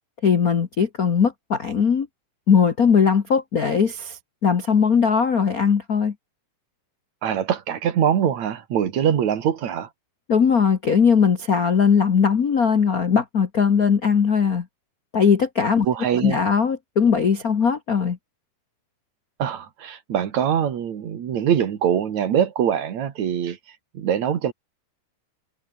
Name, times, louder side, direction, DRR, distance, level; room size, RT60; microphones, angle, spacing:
voice 1, 0.2-2.1 2.5-6.1 10.3-14.6 15.1-15.9 16.2-18.2, left 6 dB, 50° left, 1.0 m, -19 dB
voice 2, 7.2-9.9 15.8-16.4 19.4-23.6 23.9-24.5, right 9 dB, 65° right, 3.1 m, -23 dB
omnidirectional pair, 3.6 m